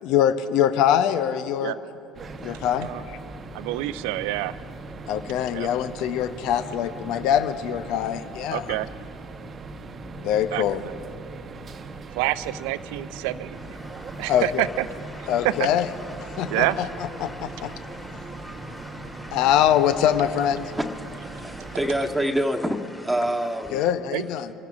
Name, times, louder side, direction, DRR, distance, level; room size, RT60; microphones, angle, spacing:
voice 1, 0.0-1.7 2.4-3.2 5.1-8.8 10.2-10.8 14.3-14.6 15.3-15.9 16.4-17.7 19.3-20.7 23.7-24.5, left 10 dB, 60° left, 11 dB, 0.6 m, -23 dB
sound 1, 2.1-22.1, right 3 dB, 35° right, 1.0 m, -39 dB
voice 2, 3.5-4.5 5.5-5.7 8.5-8.9 10.5-10.9 12.1-13.6 14.2-14.8 15.4-15.7 16.5-16.8 24.1-24.2, right 17 dB, 70° right, 14 dB, 0.6 m, -27 dB
sound 2, 13.5-23.9, left 1 dB, 15° left, 3.1 m, -44 dB
voice 3, 21.2-23.8, equal, ahead, 1 dB, 1.7 m, -26 dB
26.5 x 16.0 x 2.5 m, 2.8 s
hypercardioid pair, 60°, 0 cm